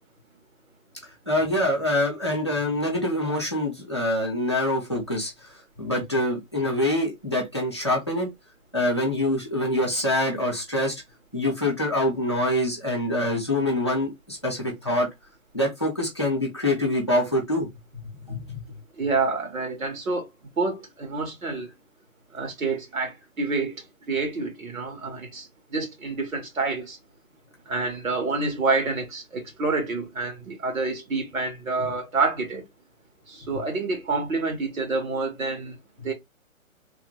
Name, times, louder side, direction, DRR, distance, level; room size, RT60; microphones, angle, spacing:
voice 1, 1.3-8.3 8.7-11.0 11.3-15.1 15.5-17.7 17.9-18.6, left 1 dB, 20° left, 0.5 m, -25 dB
voice 2, 19.0-20.3 20.6-21.7 22.3-27.0 27.7-32.6 33.3-35.8 36.0-36.1, right 3 dB, 75° right, 1.8 m, -28 dB
3.3 x 2.1 x 3.1 m
hypercardioid pair, 175°, 41 cm